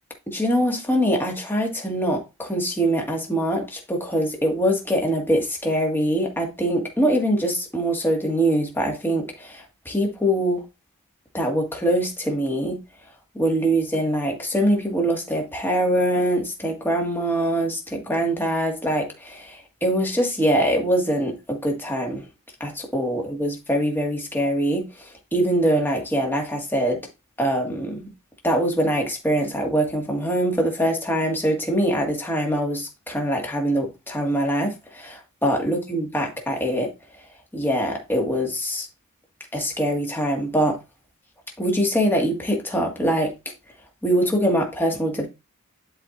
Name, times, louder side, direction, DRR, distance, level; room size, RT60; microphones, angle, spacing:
voice 1, 0.3-10.6 11.3-12.8 13.3-22.3 22.6-27.0 27.4-28.1 28.4-36.9 37.5-38.9 39.5-40.8 41.6-43.3 44.0-45.3, right 1 dB, 10° left, 1.8 m, -23 dB
11.5 x 4.3 x 2.5 m
head